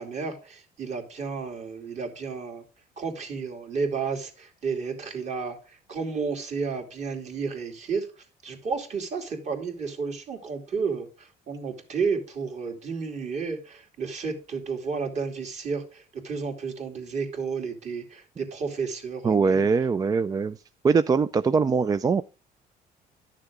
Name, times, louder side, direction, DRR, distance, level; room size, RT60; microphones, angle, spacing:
voice 1, 0.0-2.6 3.0-5.6 5.9-8.1 8.4-19.7, right 5 dB, 45° right, 2.6 m, -32 dB
voice 2, 19.2-20.6 20.8-22.2, right 5 dB, 25° right, 0.3 m, -22 dB
11.5 x 6.7 x 3.5 m
cardioid pair, 130°, 16 cm